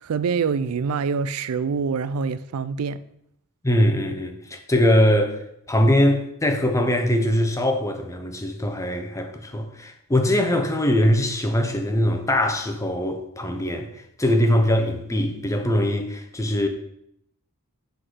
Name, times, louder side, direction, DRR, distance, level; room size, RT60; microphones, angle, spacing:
voice 1, 0.0-3.0, right 5 dB, 70° right, 0.4 m, -25 dB
voice 2, 3.6-5.4 5.7-13.9 14.2-16.7, left 1 dB, 15° left, 0.8 m, -22 dB
7.5 x 4.0 x 6.3 m
head